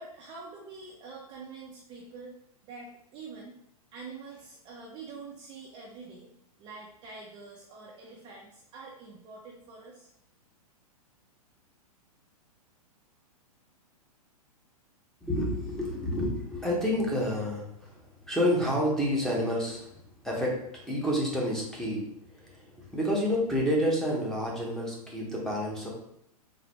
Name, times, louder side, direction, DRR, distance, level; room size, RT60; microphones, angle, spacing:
voice 1, 0.0-2.3 2.6-3.6 3.9-6.3 6.6-10.1, right 4 dB, 25° right, -2 dB, 0.5 m, -45 dB
voice 2, 15.2-25.9, equal, ahead, -4 dB, 0.9 m, -29 dB
3.9 x 2.6 x 3.0 m, 0.73 s
figure-of-eight pair, 110°, 20 cm